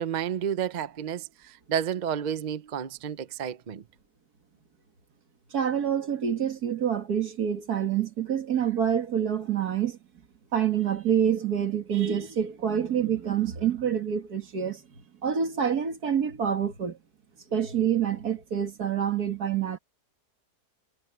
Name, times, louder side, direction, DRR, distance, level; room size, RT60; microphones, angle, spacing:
voice 1, 0.0-3.8, right 9 dB, 50° right, 0.5 m, -31 dB
voice 2, 5.5-10.0 10.5-14.8 15.2-17.0 17.5-19.8, right 8 dB, 70° right, 2.5 m, -27 dB
omnidirectional pair, 1.7 m